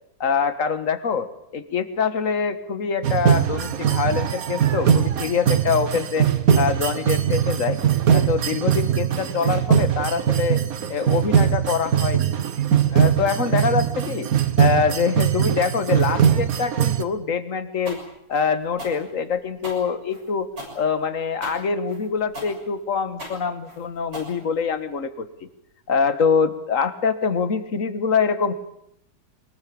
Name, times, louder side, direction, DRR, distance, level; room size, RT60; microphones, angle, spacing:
voice 1, 0.2-1.3 1.5-6.3 6.6-7.8 8.1-10.6 10.9-12.3 12.9-14.3 14.6-18.0 18.3-20.5 20.8-25.5 25.9-28.5, left 6 dB, 45° left, 11 dB, 1.9 m, -24 dB
sound 1, 3.0-17.0, right 9 dB, 55° right, 1.5 m, -21 dB
sound 2, 17.9-24.9, equal, 70° right, 7.2 m, -38 dB
23.5 x 20.5 x 8.7 m, 0.76 s
omnidirectional pair, 2.0 m